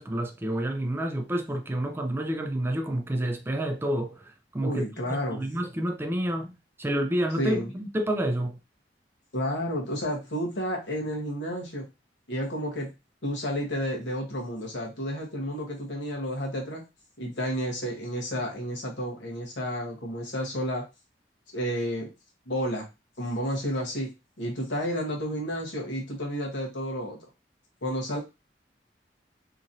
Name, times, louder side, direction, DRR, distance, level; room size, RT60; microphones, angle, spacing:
voice 1, 0.0-8.6, right 1 dB, 15° right, 0.3 m, -29 dB
voice 2, 4.6-5.4 7.4-7.7 9.3-11.9 12.3-12.9 13.2-16.8 17.2-20.9 21.5-22.1 22.5-22.9 23.2-24.1 24.4-27.3 27.8-28.2, equal, 75° left, 1.1 m, -31 dB
2.9 x 2.6 x 2.5 m
head